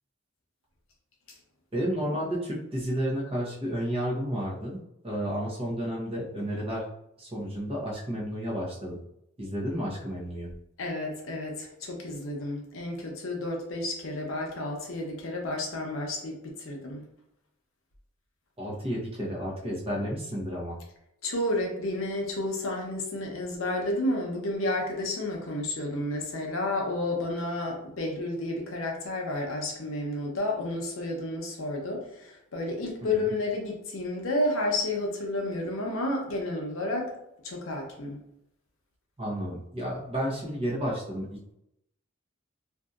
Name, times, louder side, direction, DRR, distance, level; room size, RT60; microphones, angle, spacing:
voice 1, 1.7-4.8 5.0-6.8 7.2-9.0 9.4-10.5 18.6-20.8 33.0-33.3 39.2-41.3, equal, 30° right, -4 dB, 0.9 m, -31 dB
voice 2, 10.8-17.1 21.2-37.1 37.4-38.2, left 1 dB, 90° left, 0 dB, 0.7 m, -31 dB
2.6 x 2.6 x 2.4 m, 0.79 s
head